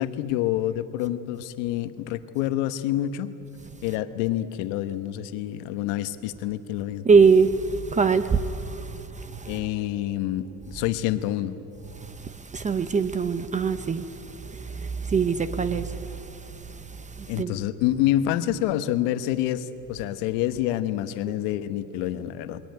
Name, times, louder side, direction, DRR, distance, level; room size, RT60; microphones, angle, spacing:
voice 1, 0.0-3.3 3.8-7.0 9.4-11.6 17.3-22.6, left 13 dB, 90° left, 1.2 m, -27 dB
voice 2, 7.1-9.5 12.2-14.1 14.6-16.2 17.2-17.6, right 5 dB, 20° right, 0.7 m, -23 dB
21.0 x 18.5 x 9.5 m
cardioid pair, 135°, 37 cm